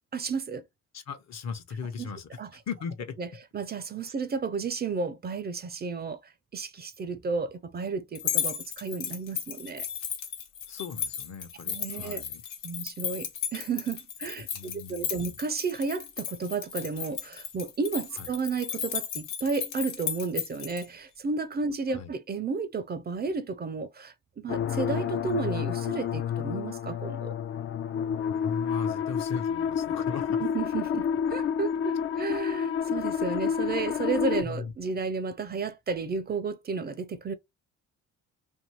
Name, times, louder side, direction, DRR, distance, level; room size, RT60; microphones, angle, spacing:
voice 1, 0.1-0.6 2.0-2.1 2.4-2.5 3.2-3.3 3.5-6.2 6.5-9.8 11.7-12.2 12.6-27.3 30.5-37.3, right 4 dB, 35° right, 0.5 m, -32 dB
voice 2, 0.9-3.2 10.7-12.4 14.5-15.4 18.2-18.3 21.9-22.1 28.3-30.4 34.5-34.7, left 6 dB, 60° left, 0.9 m, -38 dB
sound 1, 8.1-20.8, left 8 dB, 90° left, 1.1 m, -35 dB
sound 2, 24.5-34.4, left 8 dB, 45° left, 0.4 m, -29 dB
2.6 x 2.6 x 3.1 m
cardioid pair, 90°, 30 cm